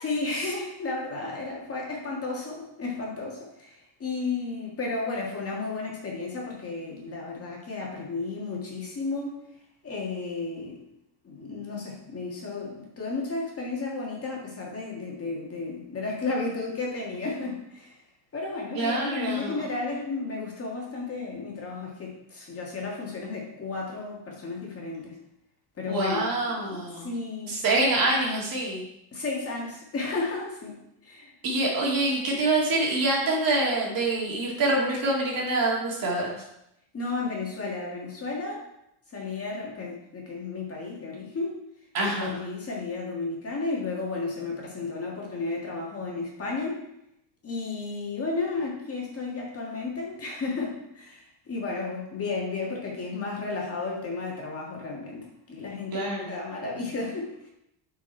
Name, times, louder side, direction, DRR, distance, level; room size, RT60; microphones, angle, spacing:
voice 1, 0.0-9.4 9.8-10.8 11.2-18.0 18.3-25.2 25.8-26.3 26.7-27.6 29.1-30.8 31.0-31.3 36.9-38.6 39.1-41.6 42.2-46.8 47.4-57.5, left 3 dB, 30° left, -2 dB, 1.9 m, -33 dB
voice 2, 18.7-19.6 25.9-27.1 27.5-28.8 31.4-36.3 41.9-42.3 55.9-56.3, right 2 dB, 45° right, -3 dB, 2.6 m, -26 dB
8.4 x 4.7 x 4.5 m, 0.81 s
cardioid pair, 135°, 49 cm